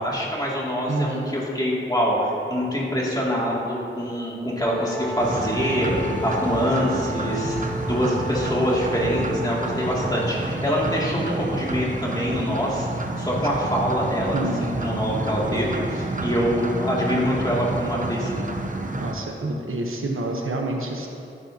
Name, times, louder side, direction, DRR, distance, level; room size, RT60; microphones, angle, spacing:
voice 1, 0.0-18.4, equal, 20° left, -5 dB, 2.6 m, -25 dB
voice 2, 0.9-1.3 14.3-14.6 19.0-21.1, right 2 dB, 75° right, 1 dB, 1.1 m, -28 dB
Wind instrument woodwind instrument, 4.6-10.6, equal, 5° left, 0.6 m, -34 dB
sound 1, 5.2-19.1, right 2 dB, 40° right, 0.9 m, -29 dB
13.0 x 10.5 x 2.9 m, 2.6 s
wide cardioid pair, 80°, 21 cm